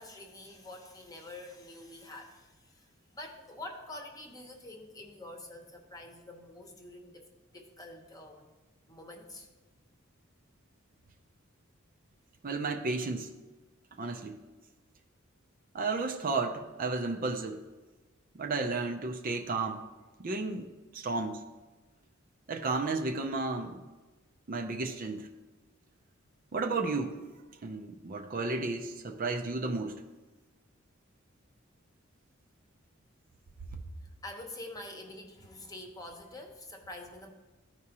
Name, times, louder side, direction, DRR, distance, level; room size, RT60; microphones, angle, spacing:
voice 1, 0.0-2.9 3.1-7.2 7.5-8.4 8.9-9.5 34.2-37.3, left 1 dB, 20° left, 2 dB, 0.9 m, -46 dB
voice 2, 12.4-13.3 14.0-14.4 15.7-17.6 18.3-19.8 20.2-21.4 22.5-23.9 24.5-25.3 26.5-27.2 27.6-30.0, right 3 dB, 45° right, 4 dB, 0.5 m, -33 dB
13.5 x 4.7 x 2.8 m, 1.2 s
head